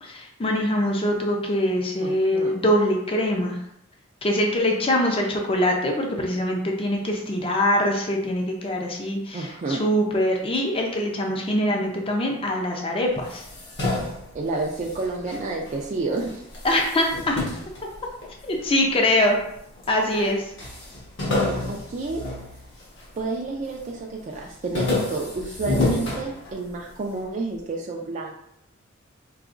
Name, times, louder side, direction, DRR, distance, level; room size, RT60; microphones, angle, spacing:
voice 1, 0.0-3.6 4.2-13.4 16.6-17.4 18.4-19.4 19.9-20.4, left 1 dB, 25° left, 1 dB, 0.5 m, -23 dB
voice 2, 2.0-2.5 9.3-9.8 14.3-16.4 20.1-20.3 21.3-22.2 23.2-28.3, right 3 dB, 35° right, -2 dB, 0.4 m, -30 dB
sound 1, 13.2-15.8 16.2-18.7 19.3-20.0 20.2-20.3 20.6-23.2 23.6-24.0 24.3-26.9, left 2 dB, 60° left, 1.2 m, -29 dB
4.8 x 2.9 x 2.5 m, 0.76 s
head